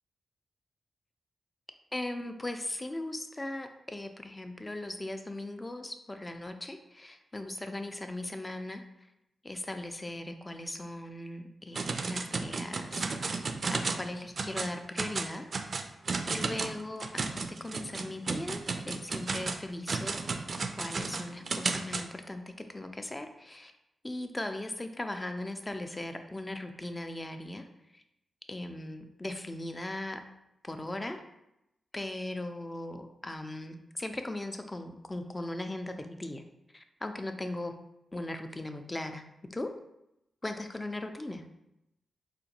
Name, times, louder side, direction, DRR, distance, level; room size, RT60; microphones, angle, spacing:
voice 1, 1.9-8.8 9.4-13.1 13.7-15.5 16.3-20.2 20.7-23.7 24.0-27.6 27.9-28.0 28.5-30.2 30.6-31.2 31.9-36.4 36.7-37.7 38.1-39.2 39.5-39.7 40.4-41.4, left 1 dB, 25° left, 7 dB, 0.4 m, -38 dB
sound 1, 11.8-14.1 14.4-14.7 15.0-22.0, right 4 dB, 55° right, 0.3 m, -33 dB
3.8 x 2.5 x 2.8 m, 0.87 s
cardioid pair, 60°, 0 cm